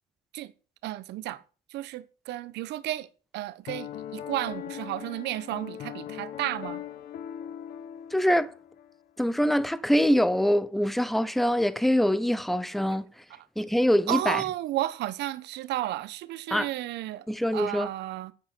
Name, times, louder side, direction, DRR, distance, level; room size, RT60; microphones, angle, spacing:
voice 1, 0.8-1.4 1.7-3.1 3.3-6.8 14.1-17.3 17.5-18.3, right 15 dB, 75° right, 1.1 m, -32 dB
Piano, 3.7-9.0, left 10 dB, 55° left, 1.1 m, -40 dB
voice 2, 8.1-8.5 9.2-13.1 13.6-14.4 16.5-16.7 17.3-17.9, equal, ahead, 0.8 m, -24 dB
9.8 x 9.2 x 7.7 m
cardioid pair, 135°, 18 cm